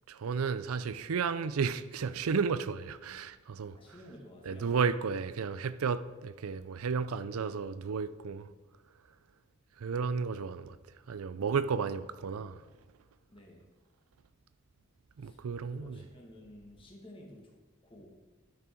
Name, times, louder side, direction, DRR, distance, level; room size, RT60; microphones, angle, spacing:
voice 1, 0.1-3.8 4.5-8.5 9.8-10.8 11.1-12.6 15.2-16.0, right 5 dB, 85° right, 0.4 m, -33 dB
voice 2, 3.7-4.7 13.3-13.7 15.2-18.2, left 1 dB, 25° left, 1.5 m, -53 dB
11.0 x 6.2 x 4.5 m
head